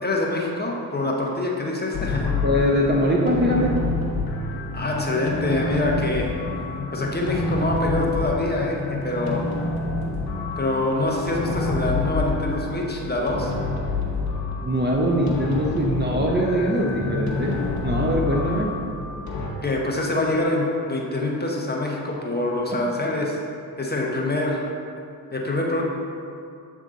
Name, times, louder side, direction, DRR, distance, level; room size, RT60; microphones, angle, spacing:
voice 1, 0.0-2.4 4.7-6.3 6.9-9.5 10.6-13.5 18.4-18.5 19.6-23.4 23.8-24.6 25.3-25.9, left 2 dB, 20° left, -2 dB, 1.1 m, -25 dB
sound 1, 1.9-19.5, left 3 dB, 45° left, 1.1 m, -28 dB
voice 2, 2.4-3.8 14.6-18.7, equal, 20° right, -2 dB, 0.8 m, -22 dB
7.4 x 3.7 x 3.8 m, 2.4 s
hypercardioid pair, 45°, 50 cm